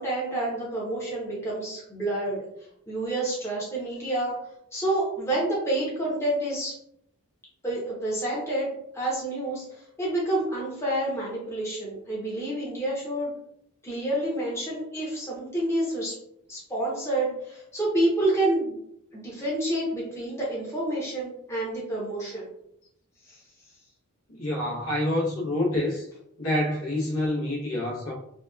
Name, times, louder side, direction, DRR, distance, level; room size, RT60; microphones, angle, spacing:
voice 1, 0.0-2.5 2.9-4.3 4.7-6.8 7.6-8.7 8.9-13.3 13.8-16.2 16.5-18.7 19.1-22.5 23.3-23.4, right 1 dB, 10° left, 0.7 m, -28 dB
voice 2, 24.3-26.1 26.4-28.1, left 1 dB, 75° left, 0.9 m, -27 dB
2.8 x 2.2 x 2.3 m
head